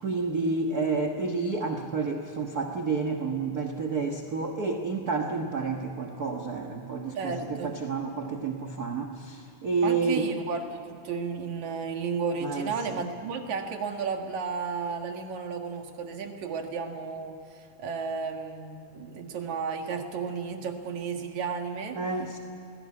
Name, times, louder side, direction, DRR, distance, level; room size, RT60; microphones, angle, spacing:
voice 1, 0.0-10.3 12.4-13.0 21.9-22.4, right 4 dB, 45° right, 2 dB, 1.2 m, -30 dB
voice 2, 7.1-7.7 9.8-22.0, right 5 dB, 70° right, 4 dB, 3.1 m, -33 dB
20.5 x 17.5 x 9.6 m, 2.7 s
omnidirectional pair, 3.5 m